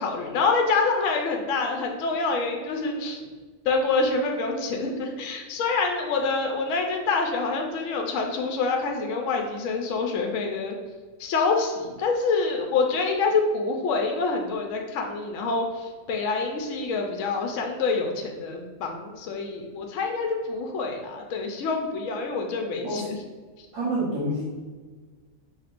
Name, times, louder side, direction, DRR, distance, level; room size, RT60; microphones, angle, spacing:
voice 1, 0.0-3.3 3.6-10.8 11.2-23.2, left 4 dB, 70° left, 2 dB, 0.9 m, -26 dB
voice 2, 23.7-24.5, right 1 dB, 65° right, -8 dB, 1.4 m, -27 dB
5.7 x 2.9 x 2.5 m, 1.4 s
omnidirectional pair, 1.4 m